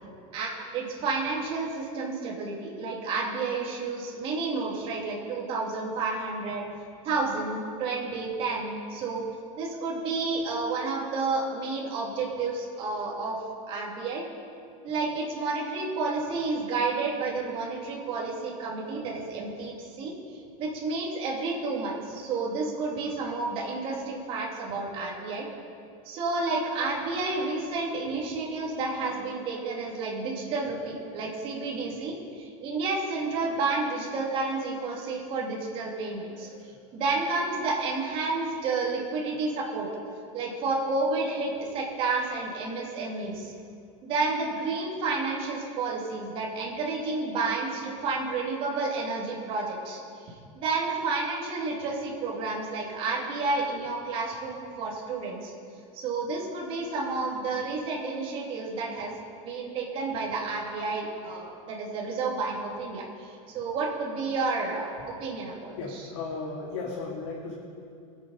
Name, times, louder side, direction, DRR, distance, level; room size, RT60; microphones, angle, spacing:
voice 1, 0.3-6.6 7.0-9.2 9.6-13.4 13.7-14.2 14.8-20.1 20.6-25.5 26.0-36.5 36.9-39.9 40.3-43.5 44.0-55.5 55.9-59.1 59.4-66.0, right 3 dB, 30° right, -3 dB, 2.5 m, -30 dB
voice 2, 65.8-67.5, left 4 dB, 55° left, -3 dB, 2.2 m, -35 dB
23.5 x 8.5 x 4.2 m, 2.4 s
supercardioid pair, 170°, 18 cm